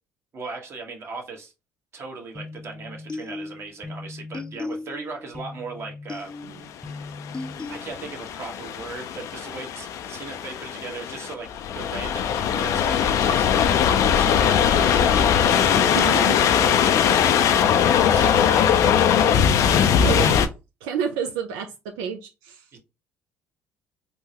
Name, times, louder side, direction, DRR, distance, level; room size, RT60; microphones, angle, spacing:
voice 1, 0.3-1.5 1.9-6.3 7.1-7.2 7.7-11.5 11.7-17.5 17.8-18.8 22.7-22.8, right 4 dB, 45° right, 1.1 m, -37 dB
sound 1, 2.3-8.3, left 3 dB, 15° left, 0.5 m, -37 dB
sound 2, 6.9-20.5, left 8 dB, 65° left, 0.4 m, -20 dB
voice 2, 15.9-16.3 20.0-20.5 20.8-22.7, right 7 dB, 85° right, 0.4 m, -29 dB
3.7 x 2.1 x 2.8 m
supercardioid pair, 75°, 6 cm